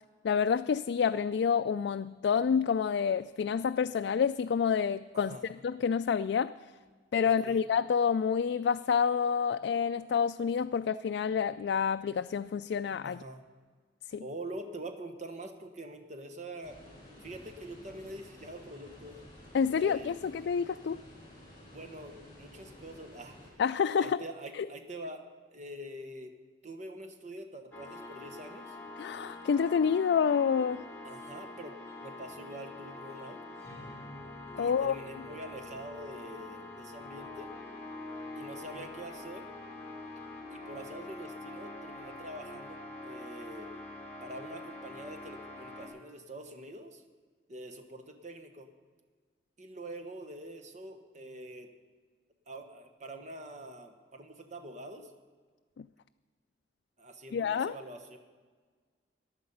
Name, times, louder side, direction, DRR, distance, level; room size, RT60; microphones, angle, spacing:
voice 1, 0.2-5.4 5.6-6.5 7.1-13.2 14.1-14.2 19.5-21.0 23.6-24.2 24.6-24.7 29.0-30.8 34.6-34.9 55.8-55.9 57.3-57.7, left 6 dB, 70° left, 10 dB, 0.3 m, -28 dB
voice 2, 5.1-5.5 7.2-7.7 13.0-13.4 14.2-16.8 17.2-19.2 19.7-20.2 21.7-23.6 24.0-25.2 25.5-26.3 26.6-28.8 31.0-33.4 34.6-37.5 38.2-39.5 40.5-43.7 44.2-47.0 47.5-48.7 49.6-51.7 52.5-55.1 57.0-58.2, right 1 dB, 40° right, 6 dB, 1.3 m, -45 dB
sound 1, 16.6-23.5, left 1 dB, 30° left, 4.9 m, -52 dB
sound 2, 27.7-45.9, left 2 dB, 10° left, 3.0 m, -45 dB
15.0 x 10.5 x 5.6 m, 1.5 s
head